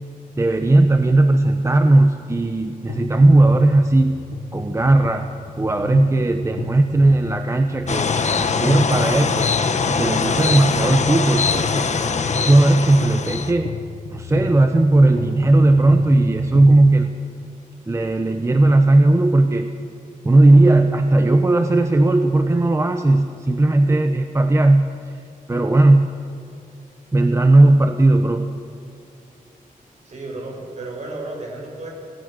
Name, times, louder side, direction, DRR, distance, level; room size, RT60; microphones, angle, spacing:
voice 1, 0.4-4.2 4.5-9.5 9.9-11.9 12.3-13.7 14.1-17.2 17.9-19.7 20.2-24.9 25.5-26.1 27.1-28.5, right 2 dB, 20° right, 6 dB, 0.8 m, -16 dB
sound 1, 2.9-16.9, left 7 dB, 75° left, 0.8 m, -34 dB
sound 2, 7.9-13.5, left 5 dB, 50° left, 1.2 m, -22 dB
voice 2, 30.1-31.9, right 2 dB, 50° right, -1 dB, 6.9 m, -33 dB
26.5 x 19.0 x 6.7 m, 2.4 s
wide cardioid pair, 160°, 15 cm